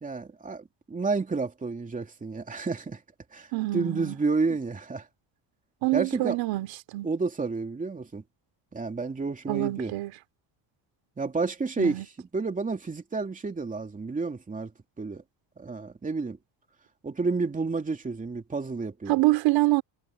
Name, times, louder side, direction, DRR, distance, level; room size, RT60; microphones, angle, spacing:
voice 1, 0.0-3.0 3.3-5.1 5.9-6.4 7.0-8.2 8.7-9.9 11.2-12.0 12.3-14.7 15.0-15.2 15.6-16.4 17.0-19.2, right 4 dB, 15° right, 2.8 m, -30 dB
voice 2, 3.5-4.2 5.8-7.1 9.5-10.1 11.8-12.0 19.1-19.8, right 19 dB, 70° right, 3.1 m, -26 dB
cardioid pair, 125°, 47 cm